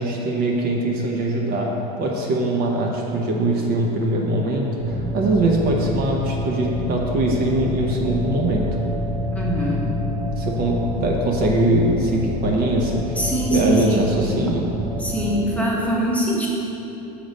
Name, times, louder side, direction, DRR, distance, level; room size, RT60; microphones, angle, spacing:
voice 1, 0.0-1.7 2.0-8.7 10.4-14.7, right 2 dB, 50° right, -1 dB, 0.8 m, -22 dB
sound 1, 4.8-15.4, left 1 dB, 25° right, 0.9 m, -28 dB
voice 2, 9.3-9.9 13.2-14.1 15.0-16.5, right 1 dB, 5° left, -5 dB, 1.0 m, -23 dB
6.7 x 3.0 x 5.2 m, 3.0 s
supercardioid pair, 115°, 20 cm